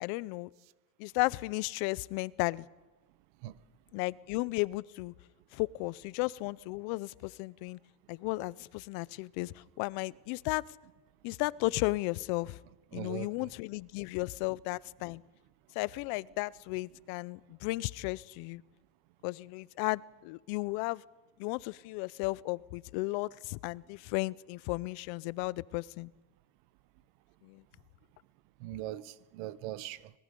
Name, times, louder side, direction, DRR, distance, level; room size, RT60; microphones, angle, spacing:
voice 1, 0.0-0.5 1.0-2.7 3.9-5.1 5.5-7.8 8.1-10.6 11.2-12.6 12.9-15.2 15.7-18.6 19.2-21.0 21.4-26.1 27.4-27.6, left 22 dB, 70° left, 0.6 m, -34 dB
voice 2, 12.9-13.5 28.6-30.0, right 14 dB, 90° right, 0.9 m, -40 dB
25.5 x 20.0 x 5.3 m
cardioid pair, 170°, 38 cm